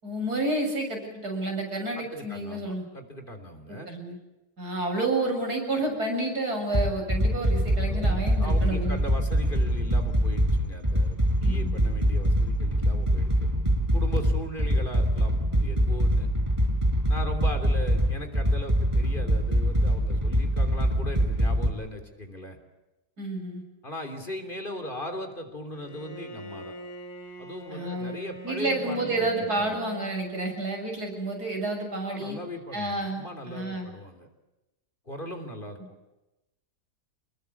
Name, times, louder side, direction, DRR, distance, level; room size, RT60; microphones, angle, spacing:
voice 1, 0.0-2.8 3.7-4.2 4.6-9.0 11.4-11.7 23.2-23.6 27.7-28.1 28.4-32.4 32.7-33.9, right 2 dB, 75° right, 2 dB, 7.7 m, -30 dB
voice 2, 2.0-3.9 7.9-13.3 13.9-16.3 17.1-22.6 23.8-26.7 27.4-29.8 32.0-34.3 35.1-35.8, equal, 30° left, 6 dB, 3.6 m, -38 dB
sound 1, 6.7-21.7, equal, 15° right, 5.5 m, -24 dB
sound 2, 8.2-14.9, left 1 dB, 50° left, 7.9 m, -46 dB
Bowed string instrument, 25.7-31.2, right 1 dB, 80° left, 5.0 m, -43 dB
27.5 x 21.5 x 8.6 m, 1.0 s
omnidirectional pair, 1.7 m